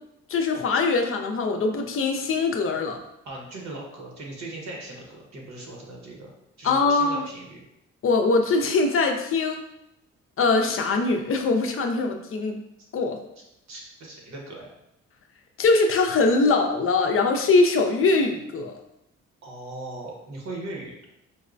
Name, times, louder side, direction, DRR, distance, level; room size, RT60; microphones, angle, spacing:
voice 1, 0.3-3.0 6.6-7.2 8.0-9.6 10.4-12.6 12.9-13.2 15.6-18.7, left 3 dB, 45° left, 3 dB, 0.5 m, -22 dB
voice 2, 3.2-6.3 6.6-7.6 13.7-14.7 19.4-21.0, right 2 dB, 65° right, -1 dB, 1.1 m, -39 dB
4.6 x 2.1 x 2.5 m, 0.83 s
cardioid pair, 90°, 30 cm